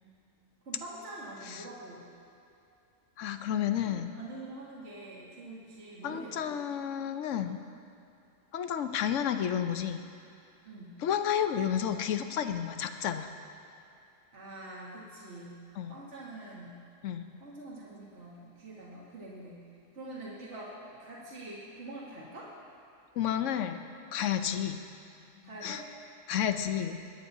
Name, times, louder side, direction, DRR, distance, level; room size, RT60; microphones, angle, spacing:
voice 1, 0.7-2.1 3.8-6.6 7.4-7.5 10.7-11.0 14.3-15.6 15.9-16.8 17.4-19.6 19.9-22.5 24.3-24.6 25.4-25.9, right 2 dB, 60° right, -6 dB, 1.8 m, -45 dB
voice 2, 3.2-4.1 6.0-7.6 8.5-10.0 11.0-13.3 15.8-15.9 17.0-17.3 23.2-23.8 24.1-24.8 25.6-25.8 26.3-27.0, left 9 dB, 70° left, 8 dB, 1.0 m, -31 dB
24.0 x 9.5 x 2.7 m, 2.7 s
omnidirectional pair, 1.3 m